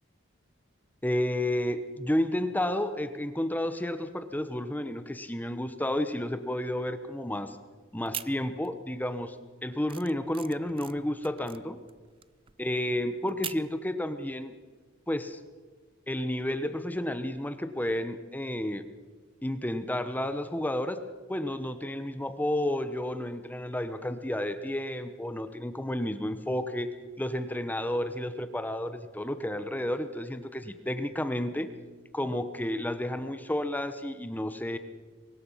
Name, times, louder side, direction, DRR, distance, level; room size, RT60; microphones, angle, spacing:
voice 1, 1.0-7.6 7.9-9.4 9.6-11.8 12.6-14.5 15.1-15.4 16.1-18.8 19.4-31.7 32.1-34.8, left 1 dB, 10° left, 10 dB, 0.9 m, -31 dB
sound 1, 8.0-8.9 9.2-13.8, right 9 dB, 25° right, 0.6 m, -42 dB
24.0 x 20.5 x 5.7 m, 1.4 s
head